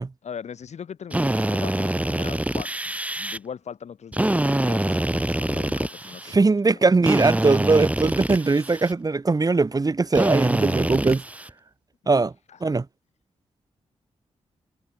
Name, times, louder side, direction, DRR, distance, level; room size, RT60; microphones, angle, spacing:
voice 1, 0.2-6.9 12.5-12.7, left 7 dB, 70° left, 6.3 m, -40 dB
Drill, 1.1-3.4 4.1-6.4 7.0-8.9 10.1-11.5, right 1 dB, 10° right, 4.1 m, -25 dB
voice 2, 6.3-11.2 12.1-12.3 12.6-12.8, right 3 dB, 30° right, 1.7 m, -20 dB
cardioid pair, 75°, 12 cm